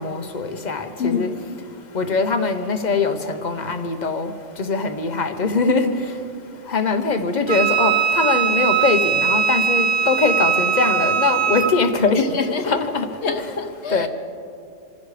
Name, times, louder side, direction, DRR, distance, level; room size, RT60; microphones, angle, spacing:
voice 1, 0.0-1.3 1.9-4.3 4.6-5.9 6.7-12.3 12.6-13.1 13.4-13.5 13.9-14.1, left 4 dB, 40° left, 7 dB, 0.9 m, -22 dB
voice 2, 1.0-1.6 12.1-12.8 13.2-14.1, left 5 dB, 55° left, 6 dB, 1.3 m, -26 dB
Wind instrument woodwind instrument, 7.5-11.7, right 8 dB, 50° right, 1.4 m, -20 dB
27.0 x 15.0 x 3.3 m, 2.5 s
omnidirectional pair, 1.4 m